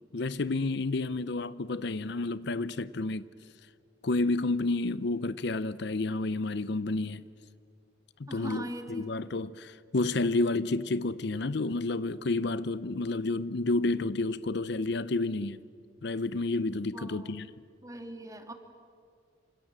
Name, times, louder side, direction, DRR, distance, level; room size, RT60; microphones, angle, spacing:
voice 1, 0.0-3.3 4.0-7.2 8.2-15.6 16.0-17.5, left 2 dB, 60° left, 0.6 m, -30 dB
voice 2, 8.3-9.1 16.9-17.4 17.8-18.5, right 1 dB, 15° right, 2.3 m, -41 dB
28.5 x 26.0 x 7.5 m
head